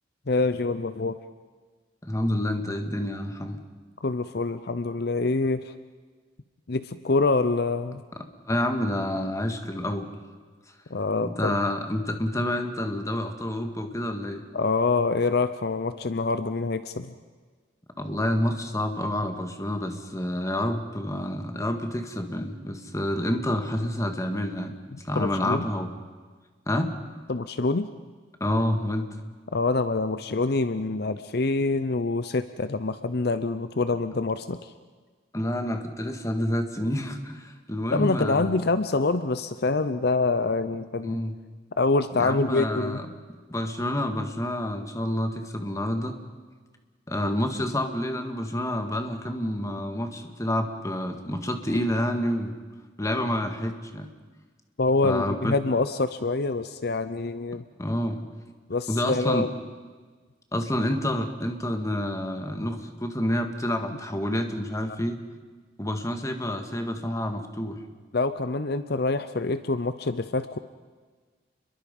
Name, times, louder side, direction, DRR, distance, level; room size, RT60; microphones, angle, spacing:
voice 1, 0.3-1.2 4.0-5.7 6.7-8.0 10.9-11.6 14.5-17.2 25.1-25.6 27.3-27.9 29.5-34.7 37.9-41.2 41.8-43.0 54.8-57.6 58.7-59.5 68.1-70.6, left 3 dB, 60° left, 12 dB, 0.7 m, -26 dB
voice 2, 2.0-3.6 8.5-10.1 11.2-14.5 18.0-24.7 25.0-25.9 26.7-26.9 28.4-29.1 35.3-38.5 41.0-41.4 42.2-43.1 43.5-46.2 47.1-52.5 53.0-54.1 55.0-55.6 57.8-58.2 58.9-59.5 60.5-65.2 65.8-67.8, left 1 dB, 15° left, 6 dB, 1.8 m, -28 dB
29.0 x 22.5 x 5.4 m, 1.5 s
head